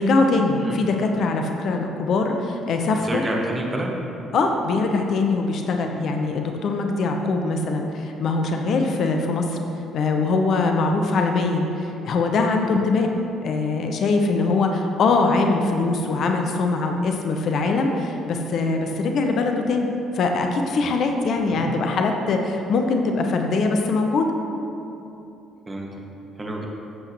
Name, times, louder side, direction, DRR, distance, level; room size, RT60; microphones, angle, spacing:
voice 1, 0.0-3.2 4.3-9.6 9.9-13.1 13.4-19.9 20.1-24.3, left 3 dB, 55° left, 3 dB, 0.8 m, -22 dB
voice 2, 3.0-4.0 21.4-21.7 25.7-25.9 26.4-26.6, right 2 dB, 25° right, -1 dB, 1.9 m, -28 dB
15.0 x 7.8 x 3.1 m, 2.9 s
figure-of-eight pair, 50°, 0 cm